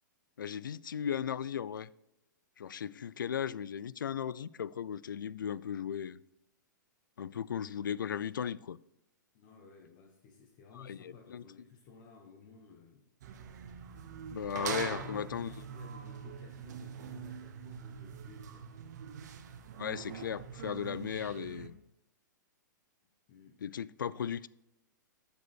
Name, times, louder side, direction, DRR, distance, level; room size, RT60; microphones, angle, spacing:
voice 1, 0.4-1.9 2.6-6.2 7.2-8.8 10.8-11.4 14.3-15.5 19.8-21.8 23.6-24.5, left 8 dB, 80° left, 0.4 m, -36 dB
voice 2, 9.3-13.1 14.5-18.8 23.3-23.6, left 6 dB, 40° left, 1.2 m, -53 dB
sound 1, 13.2-21.7, right 7 dB, 60° right, 1.1 m, -43 dB
13.5 x 5.2 x 4.5 m
hypercardioid pair, 115°, 11 cm